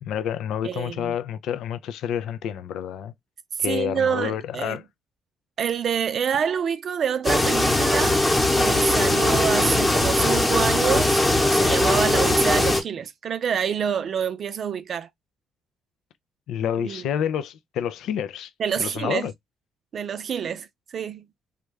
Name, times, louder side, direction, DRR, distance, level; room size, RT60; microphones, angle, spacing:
voice 1, 0.0-3.1 3.6-4.8 16.5-18.5 18.8-19.3, left 9 dB, 80° left, 0.3 m, -28 dB
voice 2, 0.6-1.1 3.7-4.8 5.6-8.2 8.5-15.1 16.8-17.1 18.6-19.3 19.9-21.3, right 7 dB, 55° right, 0.4 m, -27 dB
sound 1, 7.2-12.8, left 1 dB, 15° left, 0.9 m, -20 dB
3.5 x 2.2 x 3.0 m
cardioid pair, 90°, 0 cm